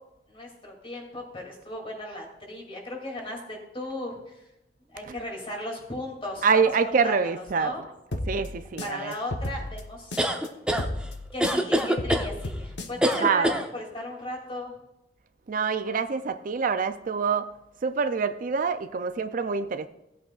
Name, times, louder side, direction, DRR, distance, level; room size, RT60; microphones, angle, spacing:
voice 1, 0.3-4.2 4.9-6.6 7.0-7.8 8.8-10.1 11.3-14.7, left 1 dB, 30° left, 0 dB, 2.7 m, -36 dB
voice 2, 6.4-7.7 8.3-9.1 13.1-13.5 15.5-17.5 17.8-19.9, right 5 dB, 50° right, 10 dB, 0.4 m, -25 dB
sound 1, 8.1-10.5 10.8-13.1, left 1 dB, 70° left, 1.0 m, -33 dB
sound 2, 10.2-10.8 11.4-12.3 13.0-13.6, equal, 5° right, 0.8 m, -24 dB
16.5 x 8.1 x 2.4 m, 0.90 s
head